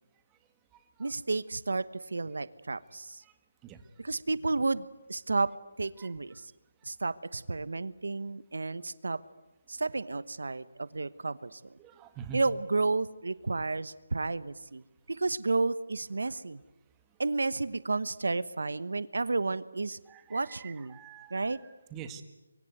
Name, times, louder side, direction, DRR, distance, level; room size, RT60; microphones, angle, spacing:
voice 1, 1.0-3.2 4.0-5.5 5.8-6.5 6.8-9.2 9.7-11.8 12.3-16.6 17.2-20.0 20.3-21.0 21.3-21.6, right 3 dB, 80° right, 17 dB, 1.1 m, -32 dB
voice 2, 11.8-12.4 20.1-20.4 20.9-21.6 21.9-22.2, right 8 dB, 15° right, 8 dB, 1.8 m, -44 dB
25.0 x 24.5 x 9.4 m, 0.97 s
figure-of-eight pair, 160°, 0 cm